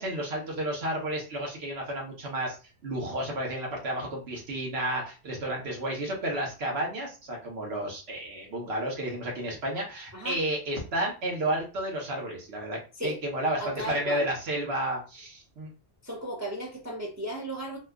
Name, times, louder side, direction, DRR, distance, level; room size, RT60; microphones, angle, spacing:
voice 1, 0.0-2.6 2.8-15.7, right 1 dB, 65° right, 1.1 m, -32 dB
voice 2, 13.6-14.3 16.0-17.8, right 1 dB, 20° right, 0.5 m, -35 dB
2.9 x 2.2 x 3.4 m
omnidirectional pair, 1.2 m